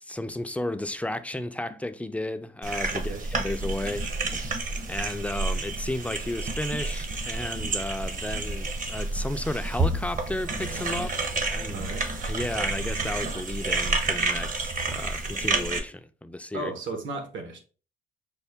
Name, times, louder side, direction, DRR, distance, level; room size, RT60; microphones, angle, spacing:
voice 1, 0.0-4.5 4.9-11.8 12.3-16.7, left 1 dB, 5° left, 0.3 m, -33 dB
sound 1, 2.6-15.8, right 3 dB, 40° right, 0.8 m, -29 dB
voice 2, 2.9-3.2 11.7-12.1 16.5-17.6, right 3 dB, 70° right, 1.0 m, -35 dB
5.3 x 2.2 x 3.4 m
cardioid pair, 90°, 20 cm